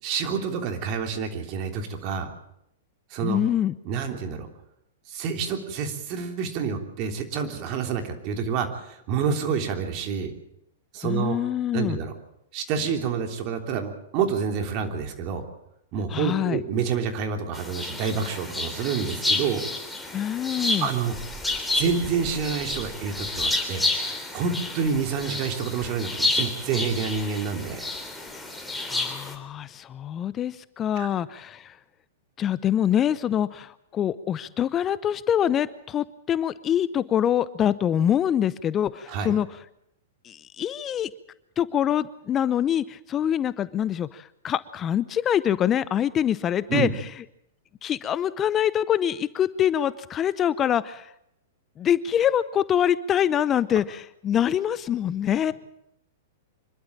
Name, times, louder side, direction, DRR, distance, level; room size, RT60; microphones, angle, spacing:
voice 1, 0.0-2.3 3.1-3.4 3.8-4.5 5.1-10.3 10.9-11.4 11.7-12.1 12.5-15.4 15.9-19.6 20.8-21.1 21.7-23.8 24.3-27.9 31.0-31.1 39.1-39.3 46.7-46.9, right 6 dB, 45° right, 6 dB, 3.3 m, -28 dB
voice 2, 3.2-3.7 11.0-12.0 16.1-16.6 20.1-20.9 28.8-31.8 32.4-39.5 40.2-41.1 41.6-46.9 47.8-51.1 51.8-55.5, left 10 dB, 25° left, 17 dB, 0.7 m, -25 dB
sound 1, 17.5-29.3, left 2 dB, 5° left, 3.5 m, -30 dB
25.5 x 12.0 x 8.8 m, 0.78 s
hypercardioid pair, 115°, 0 cm